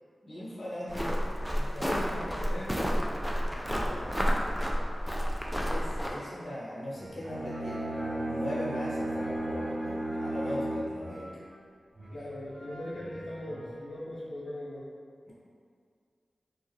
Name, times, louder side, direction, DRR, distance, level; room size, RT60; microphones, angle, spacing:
voice 1, 0.2-1.2 1.6-2.0 5.7-11.4 15.3-15.4, left 1 dB, 60° left, -8 dB, 0.9 m, -39 dB
voice 2, 0.8-1.1 1.8-3.5 3.7-4.2 12.1-14.9, left 1 dB, 80° left, -8 dB, 0.4 m, -40 dB
sound 1, 0.9-6.1, equal, ahead, 0.3 m, -30 dB
sound 2, 6.4-11.6 11.9-13.7, equal, 60° right, 0.6 m, -47 dB
Bowed string instrument, 7.2-11.0, right 1 dB, 80° right, 0.9 m, -34 dB
2.7 x 2.3 x 3.1 m, 2.2 s
wide cardioid pair, 65°, 0 cm